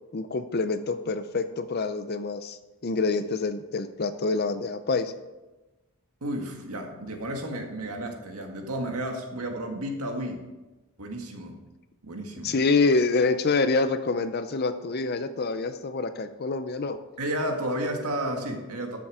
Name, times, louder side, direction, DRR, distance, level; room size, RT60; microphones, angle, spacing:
voice 1, 0.1-5.1 12.4-17.0, left 3 dB, 45° left, 10 dB, 0.6 m, -26 dB
voice 2, 6.2-10.4 11.0-11.6 12.0-12.5 17.2-19.0, right 1 dB, 85° right, 3 dB, 1.9 m, -32 dB
13.0 x 7.1 x 4.9 m, 1.1 s
head